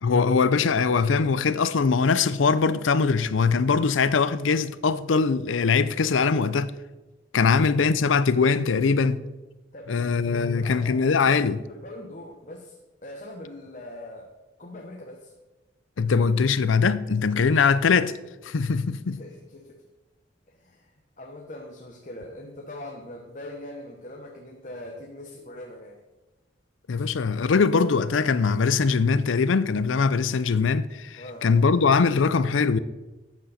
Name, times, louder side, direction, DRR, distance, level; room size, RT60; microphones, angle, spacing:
voice 1, 0.0-6.7 7.3-9.2 9.9-11.6 16.0-18.1 18.4-19.2 26.9-32.8, left 5 dB, 90° left, 0.5 m, -22 dB
voice 2, 9.7-12.8 13.0-14.3 14.6-15.3 19.2-19.8 20.5-20.9 21.2-26.0 31.2-31.5, left 1 dB, 40° left, 1.1 m, -42 dB
12.5 x 8.3 x 4.2 m
head